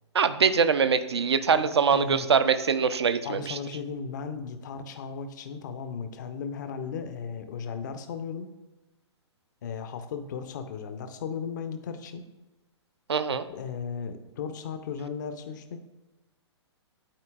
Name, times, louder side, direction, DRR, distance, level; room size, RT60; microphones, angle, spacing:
voice 1, 0.1-3.6 13.1-13.4, right 6 dB, 65° right, 11 dB, 0.5 m, -23 dB
voice 2, 1.5-2.3 3.2-8.5 9.6-12.2 13.3-15.8, left 6 dB, 40° left, 9 dB, 0.7 m, -36 dB
11.5 x 4.4 x 2.4 m, 1.1 s
figure-of-eight pair, 120°, 15 cm